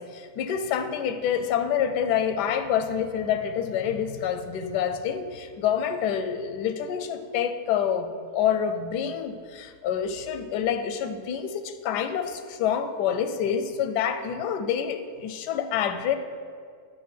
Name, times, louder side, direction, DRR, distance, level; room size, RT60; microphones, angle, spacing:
voice 1, 0.0-16.2, left 8 dB, 85° left, 9 dB, 1.2 m, -27 dB
9.5 x 3.9 x 5.8 m, 2.1 s
omnidirectional pair, 1.7 m